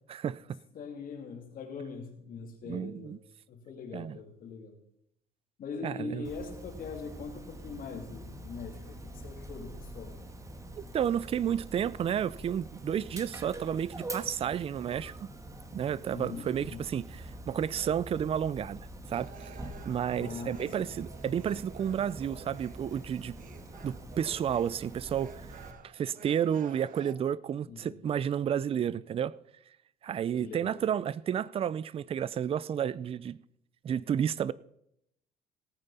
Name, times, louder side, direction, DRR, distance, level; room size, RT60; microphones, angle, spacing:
voice 1, 0.1-0.6 2.6-3.2 3.9-4.2 5.8-6.3 10.9-15.1 15.7-17.0 17.5-19.5 19.8-23.4 23.8-25.3 25.9-29.3 30.0-33.4 33.8-34.5, right 9 dB, 35° right, 0.4 m, -31 dB
voice 2, 0.7-3.2 3.5-4.8 5.6-10.2 16.1-16.8 20.2-20.9 27.7-28.0 30.4-30.8, left 5 dB, 55° left, 2.6 m, -42 dB
Dog, 6.2-25.7, right 1 dB, 20° right, 1.4 m, -45 dB
sound 1, 19.1-27.1, right 7 dB, 55° right, 1.2 m, -51 dB
18.0 x 8.8 x 4.2 m
cardioid pair, 110°, 17 cm